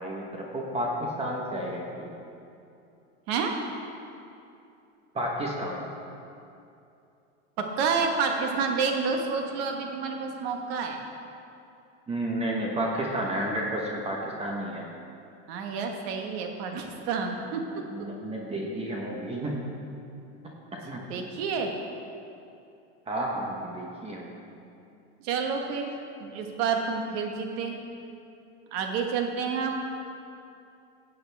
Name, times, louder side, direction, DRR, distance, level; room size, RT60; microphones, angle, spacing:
voice 1, 0.0-2.2 5.1-5.9 12.1-14.9 17.7-19.6 20.4-21.0 23.1-24.5, right 1 dB, 20° right, -1 dB, 1.1 m, -32 dB
voice 2, 7.6-11.0 15.5-17.6 21.1-21.7 25.2-27.8 28.7-29.8, right 5 dB, 70° right, 3 dB, 1.5 m, -29 dB
15.5 x 7.9 x 3.5 m, 2.7 s
supercardioid pair, 150°, 33 cm